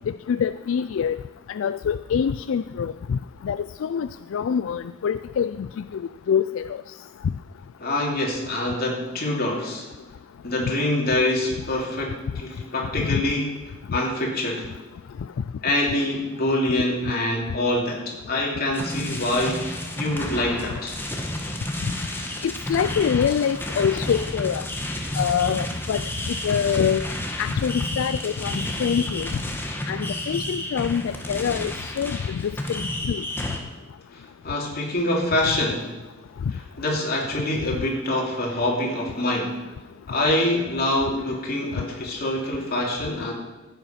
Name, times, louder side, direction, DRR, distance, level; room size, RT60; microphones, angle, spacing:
voice 1, 0.1-1.2 1.5-3.2 3.4-6.0 6.3-6.8 7.2-7.3 10.6-10.7 13.0-13.2 22.4-24.7 25.2-27.0 27.4-29.3 29.9-33.2, left 7 dB, 75° left, 13 dB, 0.3 m, -25 dB
voice 2, 7.8-9.9 10.4-13.5 13.9-14.7 15.6-21.0 34.1-35.9 36.5-39.6 40.1-43.3, left 1 dB, 50° left, -1 dB, 2.9 m, -25 dB
sound 1, 18.7-33.6, left 1 dB, 10° left, 1.4 m, -31 dB
14.5 x 8.2 x 5.8 m, 1.1 s
head